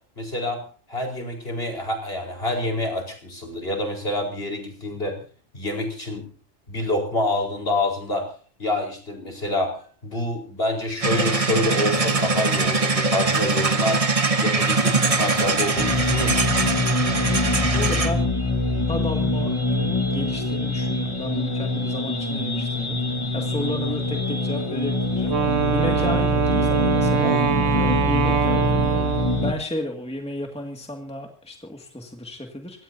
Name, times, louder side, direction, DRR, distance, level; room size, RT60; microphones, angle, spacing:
voice 1, 0.2-5.2 5.5-6.3 6.7-8.3 8.6-14.1 14.3-16.6 26.0-26.1, left 1 dB, 50° left, 2 dB, 5.1 m, -27 dB
sound 1, 11.0-18.2, right 3 dB, 30° right, 1.2 m, -22 dB
sound 2, 15.8-29.5, left 2 dB, 25° left, 1.6 m, -24 dB
voice 2, 17.3-18.3 18.9-27.4 27.7-32.8, left 1 dB, 5° left, 2 dB, 2.2 m, -33 dB
Wind instrument woodwind instrument, 25.3-29.6, right 8 dB, 80° right, 1.5 m, -23 dB
25.5 x 17.0 x 2.8 m, 0.39 s
omnidirectional pair, 1.3 m